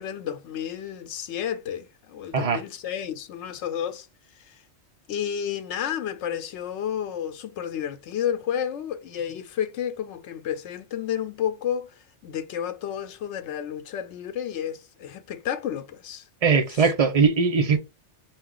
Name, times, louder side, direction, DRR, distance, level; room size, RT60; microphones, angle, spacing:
voice 1, 0.0-4.1 4.4-4.6 5.1-16.3 16.8-16.9, left 9 dB, 80° left, 0.9 m, -31 dB
voice 2, 16.4-17.8, right 5 dB, 40° right, 0.6 m, -20 dB
5.6 x 2.3 x 3.7 m
omnidirectional pair, 1.2 m